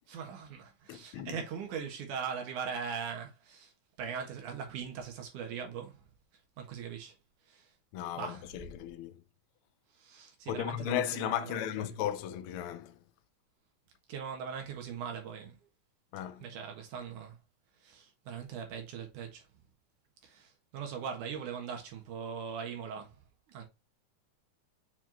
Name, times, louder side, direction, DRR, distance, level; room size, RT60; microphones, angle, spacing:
voice 1, 0.0-3.7 4.0-6.0 6.6-7.1 7.5-7.7 8.2-8.7 9.9-12.0 14.1-15.6 16.4-17.4 17.8-19.5 20.2-23.2 23.5-23.6, right 7 dB, 85° right, 3.1 m, -40 dB
voice 2, 0.9-1.4 7.9-9.2 10.5-12.9 16.1-16.4, left 11 dB, 90° left, 1.2 m, -35 dB
7.2 x 4.5 x 2.9 m
omnidirectional pair, 3.5 m